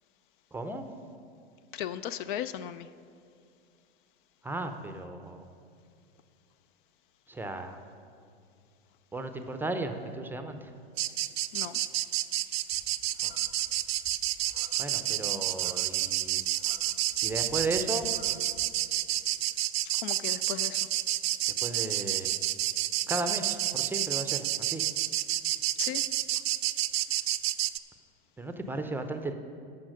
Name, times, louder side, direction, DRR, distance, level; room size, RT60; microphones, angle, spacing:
voice 1, 0.5-0.9 4.4-5.5 7.3-7.8 9.1-10.7 13.2-13.3 14.8-16.4 17.2-18.1 21.6-22.3 23.1-24.8 28.4-29.3, right 2 dB, 5° right, 7 dB, 0.6 m, -35 dB
voice 2, 1.7-2.9 11.5-11.8 19.9-20.9 25.8-26.0, left 10 dB, 50° left, 14 dB, 0.5 m, -36 dB
sound 1, 11.0-27.8, right 14 dB, 70° right, 0.5 m, -30 dB
sound 2, 12.7-18.8, left 2 dB, 20° left, 1.5 m, -54 dB
13.0 x 5.7 x 6.4 m, 2.4 s
hypercardioid pair, 110°, 32 cm